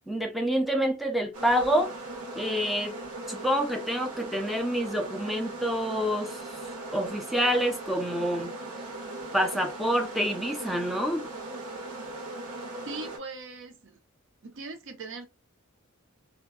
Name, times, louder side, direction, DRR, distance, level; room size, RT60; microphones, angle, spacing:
voice 1, 0.1-1.9 2.4-3.0 3.3-6.4 6.9-8.5 9.3-11.2, equal, ahead, 0.5 m, -27 dB
sound 1, 1.3-13.2, right 2 dB, 85° right, 1.2 m, -39 dB
voice 2, 12.9-14.0 14.4-15.3, right 3 dB, 60° right, 0.7 m, -40 dB
2.8 x 2.2 x 2.3 m
head